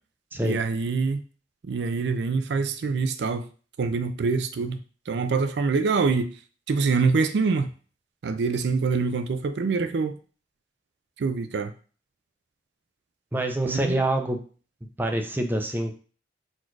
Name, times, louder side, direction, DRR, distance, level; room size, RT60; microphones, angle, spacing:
voice 1, 0.4-1.2 1.7-3.4 3.8-4.8 5.1-6.3 6.7-7.7 8.2-10.2 11.2-11.7 13.6-14.0, right 4 dB, 75° right, 0.4 m, -25 dB
voice 2, 13.3-14.4 15.0-16.0, right 1 dB, 10° right, 0.5 m, -26 dB
4.3 x 2.4 x 4.5 m
head